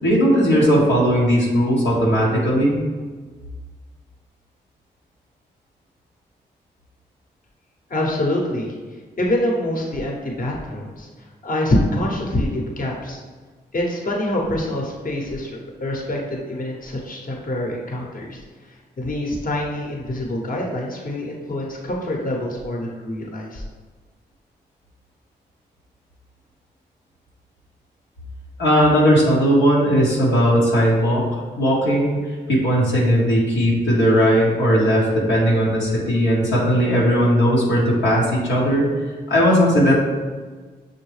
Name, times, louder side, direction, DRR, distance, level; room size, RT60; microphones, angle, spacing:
voice 1, 0.0-2.8 28.6-31.3 31.6-38.9 39.3-39.9, equal, 90° left, -6 dB, 0.9 m, -17 dB
voice 2, 7.9-8.7 9.2-11.1 11.4-13.2 13.7-18.4 19.0-23.6, left 1 dB, 50° left, -1 dB, 1.0 m, -25 dB
6.2 x 2.2 x 3.2 m, 1.4 s
supercardioid pair, 45°, 18 cm